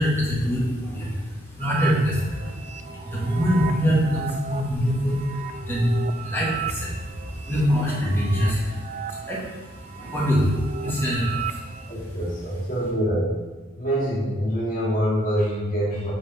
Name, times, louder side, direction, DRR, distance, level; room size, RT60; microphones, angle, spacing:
voice 1, 0.0-12.0, equal, 10° left, -6 dB, 1.4 m, -25 dB
sound 1, 1.6-11.9, right 8 dB, 35° right, 0.3 m, -36 dB
voice 2, 11.9-13.3 13.8-16.1, equal, 40° left, -7 dB, 2.2 m, -25 dB
7.8 x 3.8 x 4.0 m, 1.2 s
head